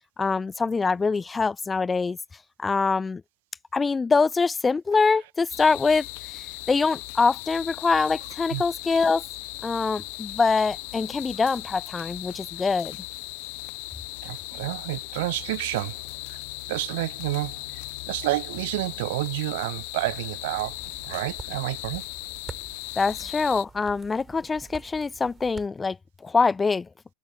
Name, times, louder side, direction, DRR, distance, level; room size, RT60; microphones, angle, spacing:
voice 1, 0.2-2.2 2.6-3.2 3.7-9.2 9.6-13.0 23.0-26.0 26.2-26.9, left 4 dB, 15° left, 0.5 m, -24 dB
sound 1, 5.5-23.7, left 27 dB, 50° left, 1.3 m, -38 dB
voice 2, 14.2-16.0 16.3-16.4 16.7-17.6 18.1-20.8 21.0-22.0, right 20 dB, 50° right, 1.0 m, -29 dB
sound 2, 20.5-25.7, right 5 dB, 15° right, 6.4 m, -46 dB
figure-of-eight pair, 90°, 0 cm